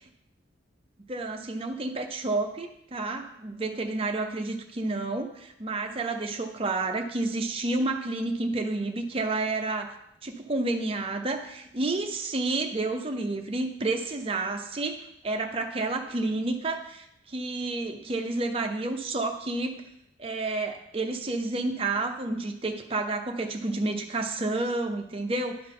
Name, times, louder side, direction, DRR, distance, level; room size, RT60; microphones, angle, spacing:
voice 1, 1.1-19.8 20.2-25.6, right 2 dB, 30° right, 4 dB, 0.6 m, -30 dB
11.0 x 3.9 x 3.8 m, 0.80 s
head